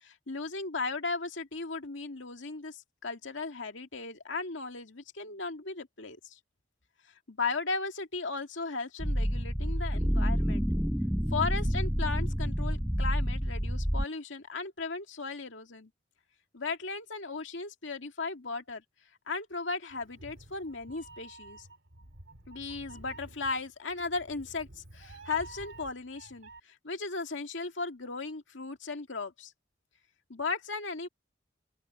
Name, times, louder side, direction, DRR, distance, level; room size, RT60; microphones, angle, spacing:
voice 1, 0.0-6.4 7.3-10.7 11.3-15.9 16.5-18.8 19.3-21.7 22.5-29.5 30.3-31.1, left 4 dB, 90° left, 2.2 m, -36 dB
sound 1, 9.0-14.0, equal, 5° right, 0.8 m, -29 dB
Meow, 19.9-26.6, right 2 dB, 90° right, 2.9 m, -51 dB
open air
head